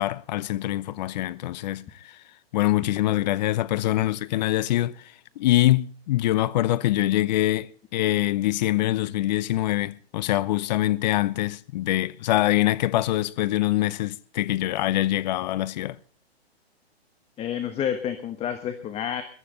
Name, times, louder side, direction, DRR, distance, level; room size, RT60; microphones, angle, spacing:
voice 1, 0.0-2.2 2.5-5.0 5.4-16.0, left 15 dB, 40° left, 0.8 m, -24 dB
voice 2, 17.4-19.2, left 9 dB, 20° left, 1.3 m, -29 dB
22.0 x 12.5 x 3.8 m
hypercardioid pair, 125°, 32 cm